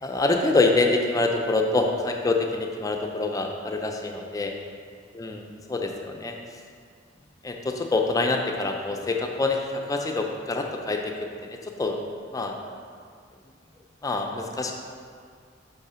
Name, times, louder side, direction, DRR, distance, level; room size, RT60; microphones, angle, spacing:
voice 1, 0.0-4.5 5.1-6.4 7.4-12.0 12.3-12.5 14.0-14.7, left 3 dB, 20° left, 2 dB, 0.4 m, -26 dB
5.5 x 3.7 x 5.5 m, 2.1 s
head